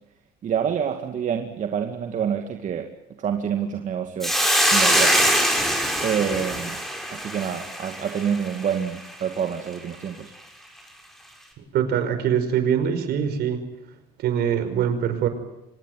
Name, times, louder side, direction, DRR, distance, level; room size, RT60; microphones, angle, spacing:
voice 1, 0.4-2.9 3.2-4.4 4.7-5.3 6.0-6.8 7.1-10.3, right 8 dB, 45° right, 5 dB, 2.3 m, -27 dB
Hiss, 4.2-8.7, equal, ahead, 6.2 m, -23 dB
voice 2, 11.7-13.6 14.2-15.3, right 8 dB, 65° right, 9 dB, 5.3 m, -23 dB
25.5 x 19.5 x 9.4 m, 0.88 s
cardioid pair, 110°, 18 cm